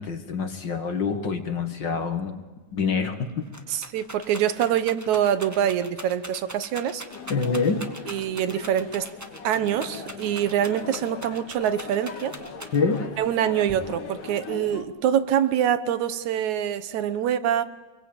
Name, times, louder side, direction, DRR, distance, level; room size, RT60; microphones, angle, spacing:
voice 1, 0.0-2.4 2.7-3.5 7.3-7.9 12.7-13.1, left 5 dB, 40° left, 7 dB, 2.1 m, -26 dB
Rattle, 2.7-2.8 3.1-13.1 13.7-14.3, right 1 dB, 25° right, 0.3 m, -42 dB
voice 2, 3.7-7.0 8.1-9.1 9.4-12.3 13.2-17.6, right 10 dB, 70° right, 12 dB, 2.4 m, -25 dB
sound 1, 7.1-14.9, left 5 dB, 75° left, 3.7 m, -40 dB
27.0 x 22.5 x 8.9 m, 1.3 s
omnidirectional pair, 3.6 m